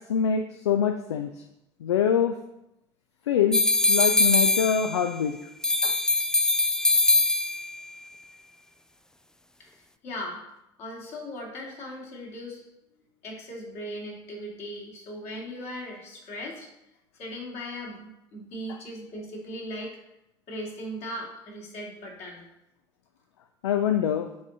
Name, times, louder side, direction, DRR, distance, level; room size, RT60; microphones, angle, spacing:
voice 1, 0.1-1.3 1.8-2.4 3.3-3.6 3.9-5.4 5.8-6.0 18.7-18.8 23.6-24.3, left 8 dB, 75° left, 7 dB, 0.4 m, -24 dB
sound 1, 3.5-5.2 5.6-7.8, left 2 dB, 5° left, 0.3 m, -22 dB
voice 2, 9.6-10.4 10.8-12.6 13.2-16.7 17.2-20.0 20.5-22.4, equal, 55° left, -2 dB, 2.4 m, -38 dB
9.4 x 3.9 x 3.9 m, 0.86 s
figure-of-eight pair, 60°, 14 cm